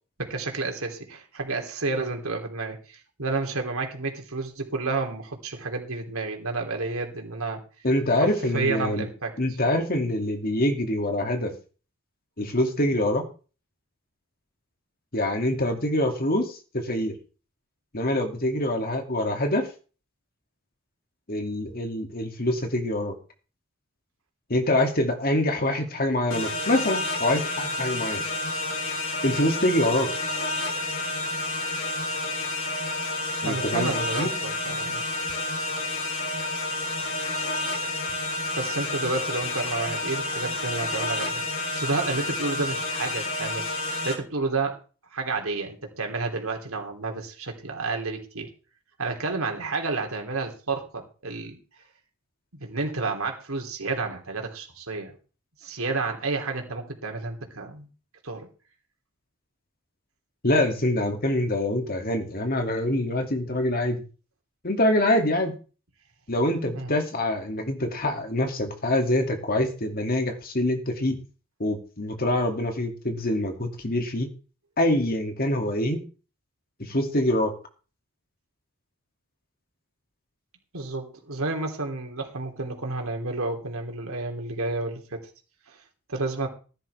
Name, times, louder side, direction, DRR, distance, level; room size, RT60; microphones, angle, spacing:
voice 1, 0.2-7.6 8.1-8.3 8.5-9.4 33.4-35.0 38.5-41.4 41.7-44.8 45.1-48.5 49.0-51.6 52.5-55.1 55.6-57.9 58.2-58.5 66.7-66.9 80.7-85.3 85.7-85.8 86.1-86.5, right 3 dB, 80° right, 3 dB, 3.2 m, -30 dB
voice 2, 7.8-9.1 9.4-11.5 12.4-13.3 15.1-17.2 17.9-19.7 21.3-23.1 24.5-28.2 29.2-30.1 33.4-34.3 60.4-64.0 64.6-65.6 66.3-71.2 71.6-74.3 74.8-76.0 76.8-77.5, left 1 dB, 45° left, 4 dB, 2.5 m, -25 dB
sound 1, 26.3-44.1, left 2 dB, 85° left, 4.4 m, -30 dB
15.0 x 11.5 x 3.5 m, 0.36 s
head